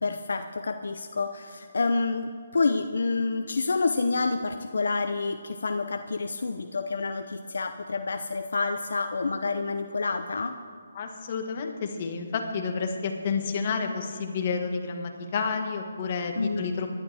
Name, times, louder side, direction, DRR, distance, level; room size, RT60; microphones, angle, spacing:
voice 1, 0.0-10.6 16.4-16.8, left 3 dB, 70° left, 7 dB, 0.7 m, -28 dB
voice 2, 10.9-16.9, left 5 dB, 40° left, 4 dB, 1.6 m, -30 dB
20.5 x 11.5 x 3.5 m, 2.3 s
hypercardioid pair, 155°, 0 cm